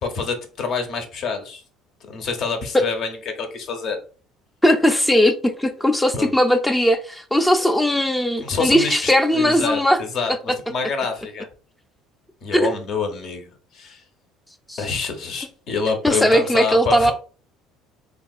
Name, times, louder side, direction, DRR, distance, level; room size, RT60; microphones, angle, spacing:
voice 1, 0.0-1.6 2.1-4.0 6.1-6.3 8.4-11.5 12.4-14.0 14.8-17.1, left 5 dB, 50° left, 0.7 m, -27 dB
voice 2, 4.6-10.0 12.5-12.7 14.7-14.8 16.0-17.1, equal, 5° left, 0.4 m, -18 dB
3.5 x 2.3 x 2.3 m
supercardioid pair, 105°, 0 cm